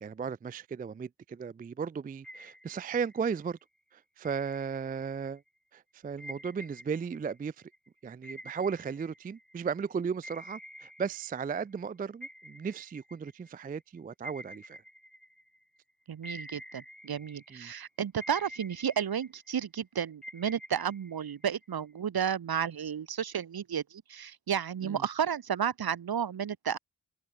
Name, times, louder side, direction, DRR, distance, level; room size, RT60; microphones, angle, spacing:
voice 1, 0.0-3.6 3.9-5.4 5.7-7.5 8.0-14.8 17.5-17.7 24.8-25.0, right 6 dB, 25° right, 0.3 m, -35 dB
sound 1, 2.2-3.5 4.2-5.4 6.2-9.8 10.2-11.9 12.2-15.8 16.2-17.8 18.2-19.8 20.2-21.9, equal, ahead, 2.1 m, -49 dB
voice 2, 16.1-26.8, right 8 dB, 65° right, 1.3 m, -32 dB
open air
cardioid pair, 75°, 39 cm